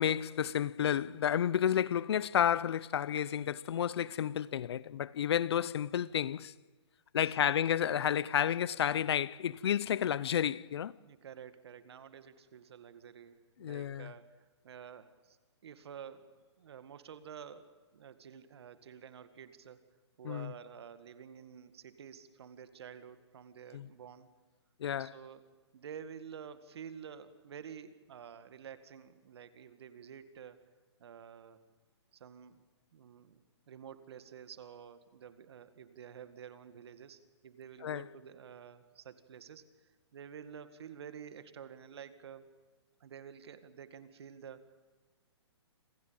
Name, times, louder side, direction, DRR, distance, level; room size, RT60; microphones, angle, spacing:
voice 1, 0.0-6.5 7.1-10.9 13.6-14.1 20.2-20.5 23.7-23.9 24.8-25.1 37.8-38.1, left 9 dB, 60° left, 0.7 m, -31 dB
voice 2, 7.1-7.6 11.0-15.4 15.6-19.8 20.2-24.3 24.9-25.5 25.7-30.6 31.0-31.6 32.1-32.6 32.9-42.5 43.0-44.7, right 8 dB, 65° right, 2.0 m, -50 dB
27.0 x 15.5 x 8.8 m
hypercardioid pair, 145°, 15 cm